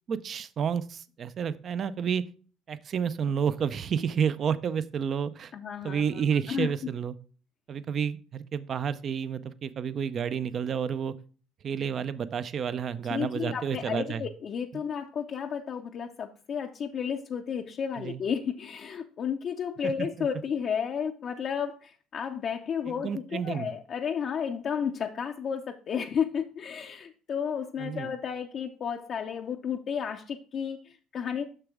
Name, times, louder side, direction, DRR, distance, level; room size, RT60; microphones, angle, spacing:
voice 1, 0.1-2.2 2.7-5.5 5.8-7.2 7.7-11.2 11.6-14.2 17.9-18.2 19.8-19.9 20.2-20.3 22.9-23.7 27.8-28.1, right 7 dB, 45° right, 15 dB, 0.5 m, -30 dB
voice 2, 5.5-6.7 13.1-31.4, left 7 dB, 50° left, 3 dB, 0.5 m, -32 dB
6.6 x 6.0 x 3.6 m, 0.40 s
supercardioid pair, 85°, 0 cm